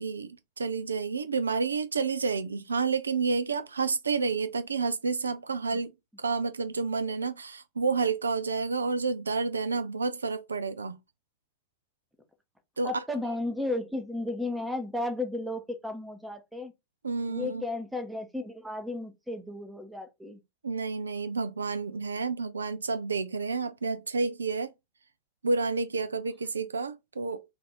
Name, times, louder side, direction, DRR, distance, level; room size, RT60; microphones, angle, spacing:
voice 1, 0.0-5.9 6.2-11.0 12.8-12.9 17.0-17.6 20.6-24.7 25.4-27.4, right 4 dB, 75° right, 0.3 m, -30 dB
voice 2, 12.8-16.7 17.3-20.4, left 2 dB, 5° right, 0.7 m, -34 dB
2.6 x 2.5 x 3.7 m
figure-of-eight pair, 90°, 0 cm